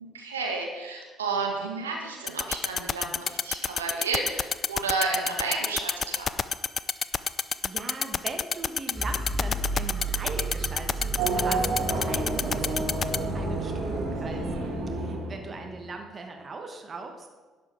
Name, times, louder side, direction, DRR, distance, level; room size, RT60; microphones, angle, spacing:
voice 1, 0.1-6.3, right 4 dB, 85° right, 1 dB, 1.2 m, -31 dB
sound 1, 2.3-13.2, left 6 dB, 40° left, 0.4 m, -26 dB
voice 2, 7.6-11.7 12.0-12.9 13.3-14.5 14.9-17.3, right 3 dB, 35° right, 4 dB, 1.3 m, -40 dB
sound 2, 8.9-14.1, right 2 dB, 10° right, 3.3 m, -33 dB
Race car auto racing / Accelerating revving vroom, 11.2-15.9, right 3 dB, 55° right, 1.9 m, -30 dB
11.0 x 7.5 x 4.8 m, 1.3 s
figure-of-eight pair, 50°, 0 cm